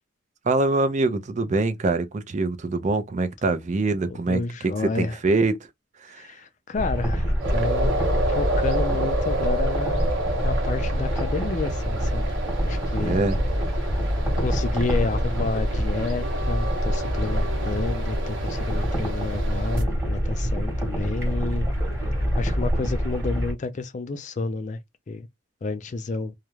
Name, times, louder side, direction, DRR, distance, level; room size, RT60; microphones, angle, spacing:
voice 1, 0.4-5.7 6.0-6.3 13.0-13.4, right 3 dB, 40° right, 0.4 m, -24 dB
voice 2, 4.1-5.2 6.1-7.9 8.3-10.1 10.4-12.3 12.7-13.2 13.8-13.9 14.4-21.7 22.4-24.8 25.1-25.3 25.6-26.3, left 3 dB, 40° left, 0.4 m, -30 dB
sound 1, 6.7-23.5, equal, 15° right, 1.1 m, -26 dB
sound 2, 7.4-19.8, right 2 dB, 85° right, 0.8 m, -30 dB
2.3 x 2.1 x 2.9 m
head